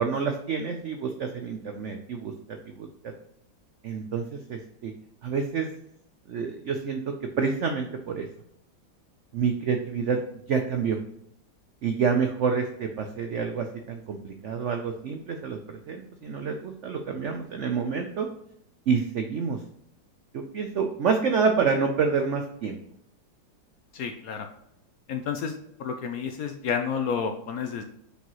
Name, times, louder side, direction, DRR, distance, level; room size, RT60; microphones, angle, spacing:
voice 1, 0.0-2.3 2.8-2.9 3.8-4.9 5.2-5.7 6.3-8.3 9.3-10.2 10.5-11.0 11.8-18.3 18.9-19.6 20.3-22.8, right 5 dB, 90° right, 5 dB, 0.6 m, -28 dB
voice 2, 23.9-24.5 25.1-27.8, left 6 dB, 70° left, 6 dB, 0.9 m, -30 dB
6.8 x 4.6 x 3.0 m, 0.74 s
omnidirectional pair, 2.0 m